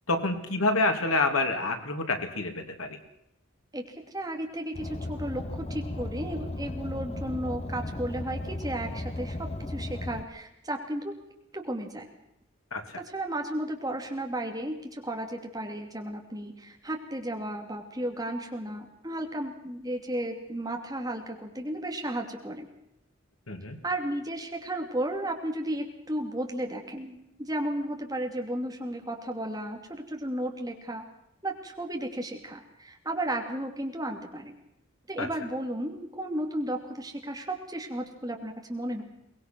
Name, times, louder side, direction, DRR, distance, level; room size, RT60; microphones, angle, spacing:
voice 1, 0.1-3.0 12.7-12.8 23.5-23.8 35.2-35.3, left 2 dB, 90° left, 5 dB, 2.8 m, -27 dB
voice 2, 3.7-11.1 11.5-12.1 12.9-22.7 23.8-31.0 31.4-34.5 35.1-39.0, right 1 dB, 15° right, 2 dB, 2.6 m, -34 dB
Car, 4.7-10.2, left 1 dB, 30° left, 1.0 m, -35 dB
23.0 x 20.0 x 6.1 m, 0.80 s
head